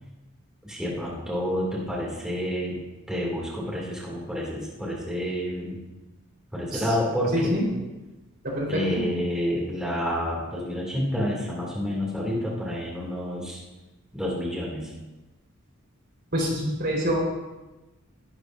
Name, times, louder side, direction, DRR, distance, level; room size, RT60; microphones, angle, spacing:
voice 1, 0.6-2.8 3.1-5.8 6.5-7.6 8.7-13.6 14.1-14.9, equal, 5° right, -5 dB, 2.4 m, -29 dB
voice 2, 7.3-7.6 8.4-9.0 16.3-17.2, equal, 50° right, -2 dB, 4.1 m, -26 dB
21.0 x 11.5 x 2.6 m, 1.1 s
head